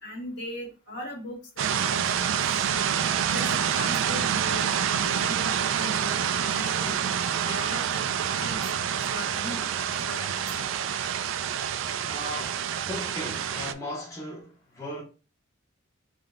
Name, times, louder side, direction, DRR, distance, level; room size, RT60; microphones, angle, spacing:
voice 1, 0.0-2.7 3.2-7.0 7.4-8.6 9.1-9.7 10.0-10.9, left 1 dB, 60° left, 1.6 m, -39 dB
sound 1, 1.6-13.7, right 8 dB, 70° right, 0.3 m, -27 dB
voice 2, 12.1-15.0, left 1 dB, 15° left, 0.7 m, -37 dB
3.8 x 2.2 x 3.7 m
head